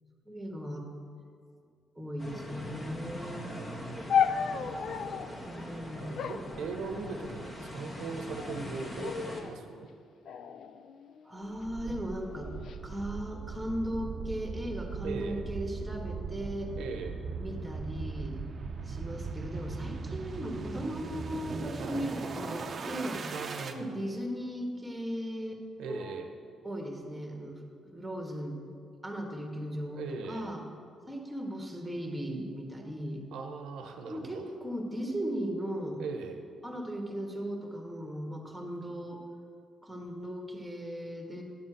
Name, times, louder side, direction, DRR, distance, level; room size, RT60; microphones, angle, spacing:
voice 1, 0.3-0.9 2.0-3.5 5.5-6.1 11.2-12.5 12.8-16.7 17.4-18.4 18.9-23.3 23.7-25.6 25.9-26.0 26.6-28.6 29.0-30.6 31.1-33.2 34.1-36.0 36.6-39.2 39.8-41.4, equal, 5° right, 2 dB, 1.5 m, -37 dB
sound 1, 2.2-9.4, left 1 dB, 30° left, 1.5 m, -42 dB
voice 2, 3.2-4.1 6.0-9.9 15.0-15.4 16.8-17.2 21.8-22.0 23.3-24.0 25.8-26.4 29.9-30.6 33.3-34.5 36.0-36.4, right 4 dB, 85° right, 4 dB, 0.8 m, -40 dB
sound 2, 4.1-5.4 6.2-7.4 8.1-8.6 9.0-9.6 10.3-11.5 12.3-12.8, left 7 dB, 65° left, 0.4 m, -33 dB
sound 3, 11.5-23.8, right 4 dB, 45° right, 0.6 m, -39 dB
10.0 x 4.3 x 7.7 m, 2.3 s
cardioid pair, 90°, 0 cm